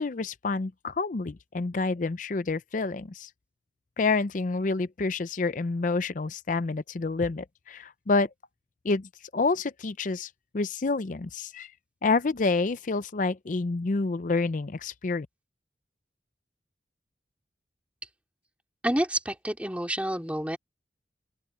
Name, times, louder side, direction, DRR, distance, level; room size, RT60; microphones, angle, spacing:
voice 1, 0.0-3.3 4.0-8.3 8.8-11.7 12.0-15.3, left 3 dB, 45° left, 0.5 m, -28 dB
voice 2, 18.8-20.6, right 1 dB, 10° right, 2.8 m, -28 dB
open air
head